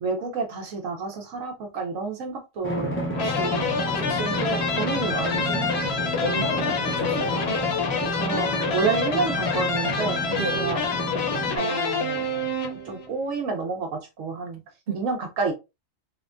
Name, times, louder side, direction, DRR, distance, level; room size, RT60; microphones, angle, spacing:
voice 1, 0.0-2.9 3.2-5.9 8.1-10.2 10.5-10.8 11.6-12.2 12.8-14.6 14.9-15.5, right 4 dB, 80° right, 1.2 m, -29 dB
Drum, 2.6-11.6, equal, 15° left, 0.5 m, -30 dB
sound 1, 3.1-13.1, left 4 dB, 60° left, 0.9 m, -27 dB
voice 2, 6.0-7.4 8.8-9.0 10.3-10.6 14.9-15.0, right 2 dB, 50° right, 0.9 m, -32 dB
3.4 x 2.2 x 2.4 m
omnidirectional pair, 1.4 m